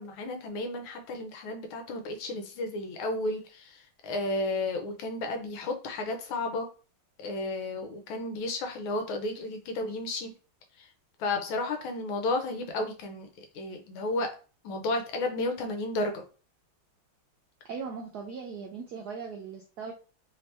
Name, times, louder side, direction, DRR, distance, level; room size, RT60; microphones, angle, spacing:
voice 1, 0.0-6.7 7.2-10.3 10.8-10.9 11.2-14.3 14.6-16.2, left 2 dB, 80° left, 5 dB, 1.5 m, -32 dB
voice 2, 17.7-19.9, right 5 dB, 80° right, 2 dB, 0.9 m, -39 dB
3.5 x 2.8 x 3.2 m, 0.36 s
omnidirectional pair, 2.3 m